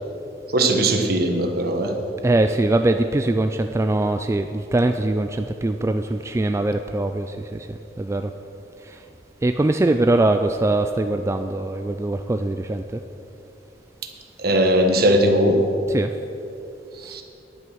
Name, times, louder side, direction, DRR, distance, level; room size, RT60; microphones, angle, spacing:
voice 1, 0.5-1.9 14.4-15.6 17.0-17.2, right 1 dB, 60° right, 4 dB, 1.3 m, -19 dB
voice 2, 2.2-8.3 8.8-9.0 9.4-13.0 15.9-16.1 17.0-17.2, right 2 dB, 15° right, 7 dB, 0.3 m, -22 dB
11.0 x 9.0 x 6.3 m, 2.8 s
head